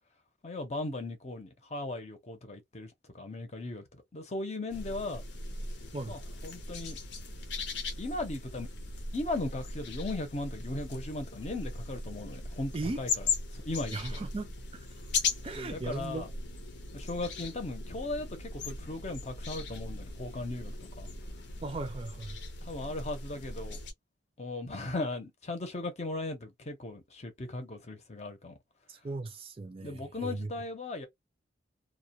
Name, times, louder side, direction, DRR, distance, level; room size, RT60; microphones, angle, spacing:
voice 1, 0.4-5.2 6.1-7.0 8.0-8.7 9.1-14.2 15.5-16.3 16.9-21.1 22.6-23.8 24.4-28.5 29.8-31.1, left 2 dB, 35° left, 0.7 m, -37 dB
sound 1, 4.7-23.9, left 4 dB, 75° left, 0.6 m, -38 dB
voice 2, 13.9-14.8 15.4-16.3 21.6-22.4 28.9-30.5, right 3 dB, 30° right, 0.4 m, -37 dB
2.3 x 2.2 x 2.6 m
head